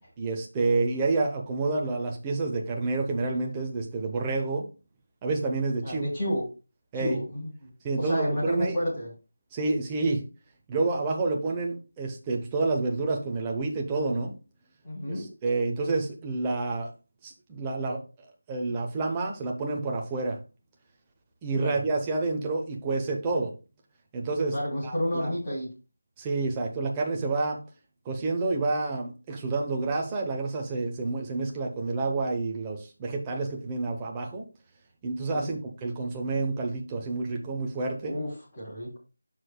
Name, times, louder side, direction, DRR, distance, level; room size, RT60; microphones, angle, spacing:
voice 1, 0.2-4.7 5.2-6.0 6.9-7.3 7.8-8.8 9.5-10.2 10.7-14.3 15.1-16.9 17.2-18.0 18.5-20.4 21.4-23.5 24.1-24.5 24.8-25.3 26.2-27.6 28.0-34.4 35.0-38.2, right 3 dB, 10° right, 1 dB, 0.7 m, -29 dB
voice 2, 5.8-6.5 6.9-7.7 8.0-9.1 14.8-15.3 21.6-21.8 24.5-25.7 35.3-35.5 38.0-39.0, equal, 15° left, -7 dB, 3.0 m, -31 dB
13.0 x 4.7 x 2.2 m, 0.31 s
figure-of-eight pair, 180°, 0 cm